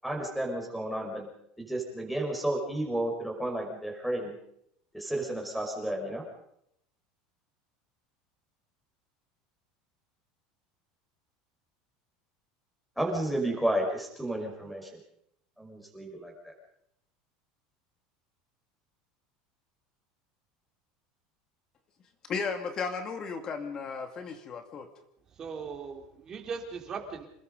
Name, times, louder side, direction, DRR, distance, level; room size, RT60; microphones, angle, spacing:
voice 1, 0.0-1.3 1.6-4.4 4.9-6.2 13.0-15.0 15.6-16.5, right 1 dB, ahead, 0 dB, 5.9 m, -32 dB
voice 2, 22.3-24.9, left 5 dB, 30° left, 6 dB, 2.4 m, -34 dB
voice 3, 25.4-27.3, right 5 dB, 25° right, 3 dB, 3.8 m, -38 dB
27.5 x 21.0 x 5.4 m, 0.75 s
cardioid pair, 155°, 2 cm